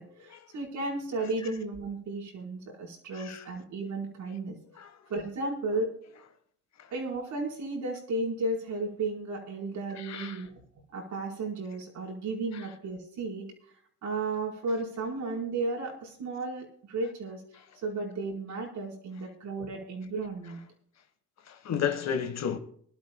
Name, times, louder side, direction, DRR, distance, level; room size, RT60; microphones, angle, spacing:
voice 1, 0.0-4.6 5.1-5.9 6.9-10.6 10.9-13.5 14.0-17.4 17.8-20.6, right 2 dB, 75° right, 4.7 m, -34 dB
voice 2, 3.1-3.5 4.7-5.0 6.8-6.9 9.9-10.5 12.5-12.7 17.5-17.7 21.4-22.6, left 8 dB, 65° left, 1.6 m, -34 dB
24.5 x 12.0 x 2.3 m
cardioid pair, 90°, 30 cm